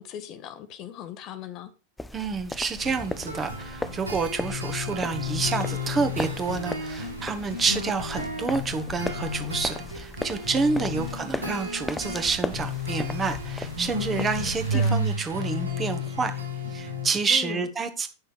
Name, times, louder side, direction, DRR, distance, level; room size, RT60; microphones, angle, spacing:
voice 1, 0.0-1.7 10.8-11.1 14.7-15.0 17.3-17.7, left 9 dB, 40° left, 0.9 m, -38 dB
sound 1, 2.0-14.9, left 2 dB, 5° left, 0.5 m, -37 dB
voice 2, 2.1-16.3 16.7-18.1, right 4 dB, 20° right, 1.4 m, -28 dB
sound 2, 2.8-17.1, left 2 dB, 80° right, 3.4 m, -32 dB
Keyboard (musical), 5.6-8.6, right 9 dB, 65° right, 1.5 m, -52 dB
9.5 x 6.4 x 4.7 m
figure-of-eight pair, 90°, 0 cm